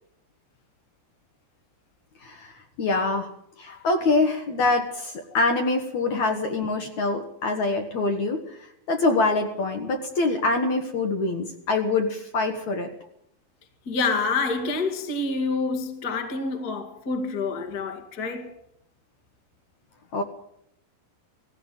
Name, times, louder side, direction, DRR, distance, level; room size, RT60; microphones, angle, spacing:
voice 1, 2.2-2.5 2.8-3.3 3.6-8.4 8.9-12.9 20.1-20.2, left 3 dB, 55° left, 2.6 m, -24 dB
voice 2, 13.9-18.6, left 4 dB, 30° left, 1.9 m, -27 dB
18.5 x 15.0 x 9.2 m
omnidirectional pair, 4.8 m